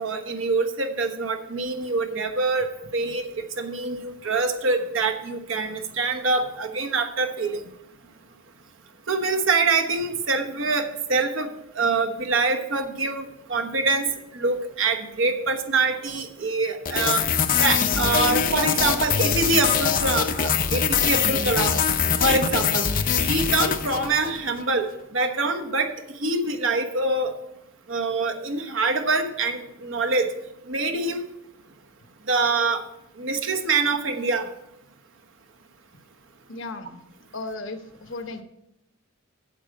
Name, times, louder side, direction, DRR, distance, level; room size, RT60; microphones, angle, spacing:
voice 1, 0.0-7.6 9.1-11.5 11.7-17.2 17.6-21.8 22.2-22.9 23.2-25.9 26.2-27.3 27.9-30.3 30.7-31.2 32.3-32.8 33.2-34.5, right 3 dB, 70° right, 6 dB, 1.1 m, -25 dB
sound 1, 16.9-24.4, left 7 dB, 40° left, 0.6 m, -23 dB
voice 2, 36.5-37.0 37.3-38.4, left 2 dB, 65° left, 8 dB, 1.0 m, -35 dB
8.9 x 7.9 x 5.3 m, 0.85 s
head